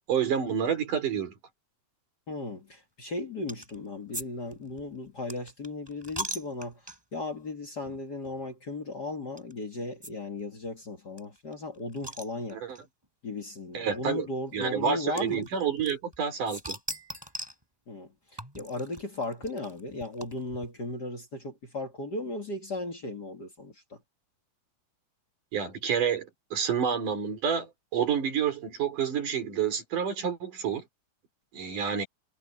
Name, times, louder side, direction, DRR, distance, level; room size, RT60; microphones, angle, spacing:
voice 1, 0.1-1.3 12.5-12.8 13.7-14.3 14.5-16.8 25.5-30.8 31.5-32.1, right 7 dB, 75° right, 5.6 m, -29 dB
voice 2, 2.3-6.8 7.1-12.6 13.2-15.5 17.9-18.1 18.5-24.0, left 2 dB, 35° left, 2.2 m, -36 dB
sound 1, 3.5-3.8 4.1-4.3 4.5-7.2 7.8-8.0 8.2-8.3 9.4-9.5 10.0-10.1 10.4-10.5 10.7-10.8 11.2-12.8 13.7-13.8 15.2-16.2 16.5-17.6 18.4-20.7, right 1 dB, 5° right, 5.4 m, -40 dB
omnidirectional pair, 3.6 m